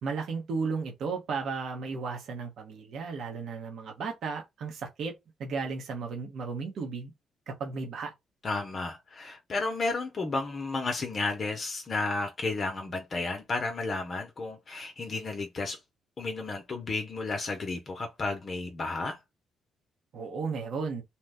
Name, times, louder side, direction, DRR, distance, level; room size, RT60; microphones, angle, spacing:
voice 1, 0.0-5.1 5.4-7.1 7.5-8.1 20.1-21.0, right 4 dB, 70° right, 0.8 m, -34 dB
voice 2, 8.4-15.8 16.2-19.2, left 3 dB, 40° left, 0.6 m, -32 dB
2.8 x 2.1 x 3.4 m
cardioid pair, 90°, 0 cm